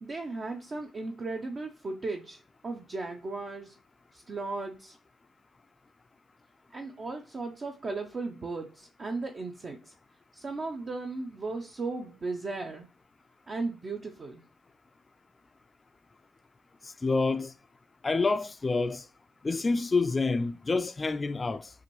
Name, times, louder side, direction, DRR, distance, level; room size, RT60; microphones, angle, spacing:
voice 1, 0.0-3.7 4.1-5.0 6.7-9.9 10.3-12.9 13.5-14.4, right 3 dB, 40° right, 0.6 m, -36 dB
voice 2, 16.8-17.5 18.0-19.0 19.4-21.7, left 3 dB, 25° left, 0.4 m, -28 dB
5.7 x 2.6 x 3.0 m
cardioid pair, 90°, 0 cm